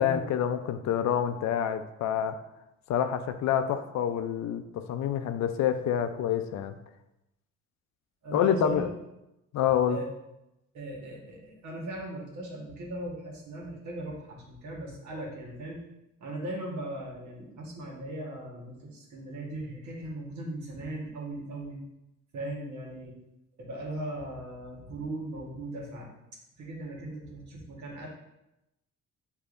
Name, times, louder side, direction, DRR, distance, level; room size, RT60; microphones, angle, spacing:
voice 1, 0.0-2.4 2.9-4.6 4.9-6.7 8.3-8.9 9.5-10.0, left 9 dB, 65° left, 9 dB, 0.4 m, -27 dB
voice 2, 8.2-8.9 9.9-10.1 10.7-15.8 16.2-21.8 22.3-23.2 23.6-26.1 26.5-28.1, right 1 dB, 70° right, -2 dB, 1.4 m, -38 dB
6.6 x 2.7 x 2.5 m, 0.90 s
cardioid pair, 90°, 30 cm